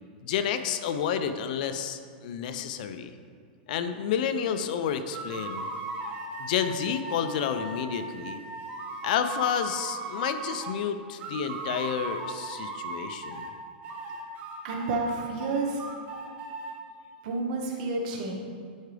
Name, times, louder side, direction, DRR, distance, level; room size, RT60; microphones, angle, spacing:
voice 1, 0.2-3.1 3.7-5.6 6.4-8.4 9.0-13.4, left 8 dB, 55° left, 9 dB, 0.5 m, -30 dB
sound 1, 5.1-10.8 11.2-13.5 13.8-16.7, right 3 dB, 30° right, 0.9 m, -37 dB
voice 2, 14.6-15.8 17.2-18.3, right 3 dB, 55° right, 1 dB, 1.3 m, -30 dB
10.5 x 4.7 x 3.4 m, 2.2 s
supercardioid pair, 150°, 5 cm